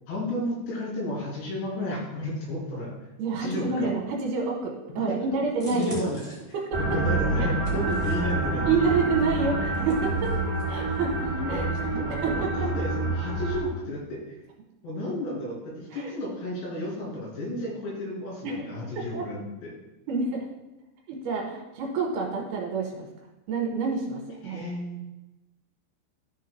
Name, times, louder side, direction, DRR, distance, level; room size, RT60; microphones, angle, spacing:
voice 1, 0.1-2.9 3.4-3.9 5.7-6.2 6.8-9.0 11.2-11.7 12.0-14.4 14.8-19.7 24.4-25.0, left 1 dB, 75° left, -4 dB, 4.7 m, -32 dB
voice 2, 3.2-6.0 6.5-7.0 7.4-7.5 8.7-10.3 10.7-11.1 11.5-11.7 12.1-12.7 15.9-16.1 18.4-18.7 19.1-19.3 20.1-20.5 21.1-23.1 23.5-24.6, right 4 dB, 70° right, 0 dB, 2.9 m, -28 dB
sound 1, 5.5-8.5 9.0-10.7 10.9-11.1, equal, 10° left, 0.9 m, -44 dB
sound 2, 6.7-13.6, right 2 dB, 25° right, 2.7 m, -28 dB
13.5 x 6.4 x 2.2 m, 0.99 s
omnidirectional pair, 5.0 m